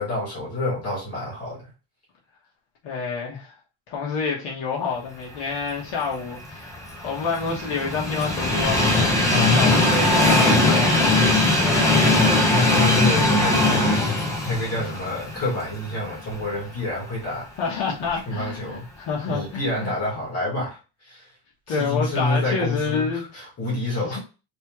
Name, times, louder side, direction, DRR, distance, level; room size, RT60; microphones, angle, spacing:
voice 1, 0.0-1.7 9.3-9.7 12.5-17.5 18.3-18.9 19.3-21.3 21.7-24.2, left 2 dB, 30° left, 1.7 m, -28 dB
voice 2, 2.8-3.5 3.9-6.7 7.0-11.6 17.6-19.9 21.7-23.2 24.0-24.2, left 5 dB, 65° left, 1.3 m, -28 dB
Train, 6.3-16.4 16.9-17.0 18.1-18.2, left 2 dB, 5° left, 0.8 m, -20 dB
3.5 x 3.2 x 3.0 m
cardioid pair, 175°, 47 cm